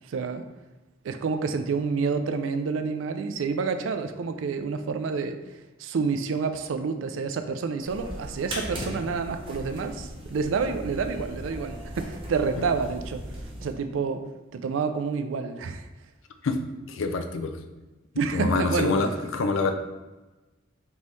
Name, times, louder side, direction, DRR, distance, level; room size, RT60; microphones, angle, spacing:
voice 1, 0.1-0.4 1.0-5.4 5.8-13.2 13.6-14.2 14.5-15.9 18.2-19.1, right 5 dB, 80° right, 8 dB, 0.4 m, -28 dB
sound 1, 7.8-13.7, equal, 30° right, 0.8 m, -38 dB
voice 2, 16.9-17.6 18.3-19.7, left 3 dB, 90° left, 7 dB, 0.4 m, -26 dB
3.9 x 3.6 x 3.1 m, 1.1 s
head